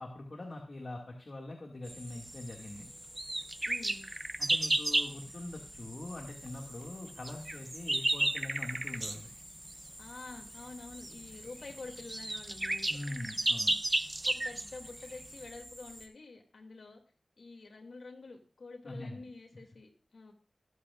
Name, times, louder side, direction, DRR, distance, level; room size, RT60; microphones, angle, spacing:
voice 1, 0.0-2.9 4.4-9.3 12.9-13.7 18.8-19.2, left 1 dB, 55° left, 1 dB, 2.1 m, -43 dB
sound 1, 1.8-16.1, equal, 10° right, 2.3 m, -50 dB
sound 2, 3.2-5.1 7.2-9.2 11.0-11.1 11.7-11.8 12.0-14.7, right 2 dB, 30° right, 0.5 m, -32 dB
voice 2, 3.7-4.0 10.0-13.2 14.0-17.0 17.4-20.3, left 3 dB, 75° left, 3 dB, 2.4 m, -48 dB
21.5 x 8.3 x 2.5 m, 0.39 s
wide cardioid pair, 60°, 0 cm